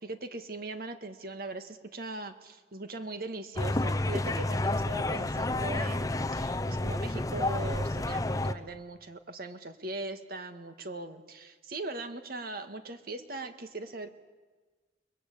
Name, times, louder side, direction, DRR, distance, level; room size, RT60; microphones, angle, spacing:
voice 1, 0.0-14.2, right 2 dB, 60° right, 8 dB, 1.8 m, -40 dB
sound 1, 3.6-8.5, left 2 dB, 20° left, 0.8 m, -30 dB
29.0 x 21.5 x 8.5 m, 1.3 s
head